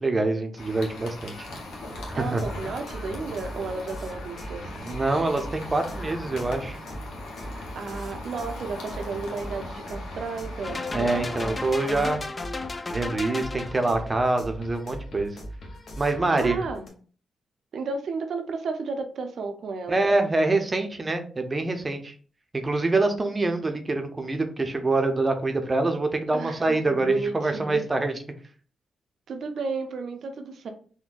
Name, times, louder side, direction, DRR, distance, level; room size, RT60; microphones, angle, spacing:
voice 1, 0.0-1.5 2.1-2.4 4.8-6.8 10.9-12.2 12.9-15.3 16.0-16.6 19.9-22.1 22.5-28.1, right 2 dB, 30° right, 6 dB, 0.6 m, -25 dB
sound 1, 0.6-11.9, left 1 dB, 90° left, 0.9 m, -39 dB
sound 2, 1.9-16.9, equal, 65° left, 0.9 m, -40 dB
voice 2, 2.1-4.7 7.5-10.9 16.3-16.9 17.7-20.0 26.3-27.9 29.3-30.7, right 4 dB, 70° right, 6 dB, 0.6 m, -33 dB
sound 3, 10.6-14.1, left 3 dB, 30° left, 0.3 m, -34 dB
3.8 x 2.2 x 2.5 m, 0.41 s
cardioid pair, 60°, 0 cm